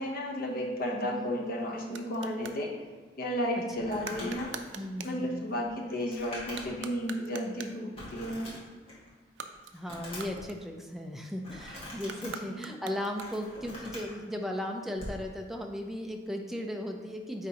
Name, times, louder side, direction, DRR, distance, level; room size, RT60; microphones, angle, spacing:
voice 1, 0.0-2.7 3.2-4.5 5.0-8.5 12.2-12.6, equal, 50° left, 0 dB, 0.9 m, -33 dB
voice 2, 1.0-1.3 4.2-4.3 4.7-5.4 9.7-17.5, left 1 dB, ahead, 1 dB, 0.5 m, -36 dB
sound 1, 1.2-2.6 4.0-5.2 6.4-7.9 9.2-11.0 12.0-13.6, right 6 dB, 85° right, 0.4 m, -45 dB
Crumpling crinkling, 3.7-6.9 7.3-7.4 7.9-9.1 9.5-10.4 11.4-12.3 12.9-14.1 14.9-15.2, left 1 dB, 30° left, 1.7 m, -44 dB
9.1 x 3.6 x 2.9 m, 1.4 s
head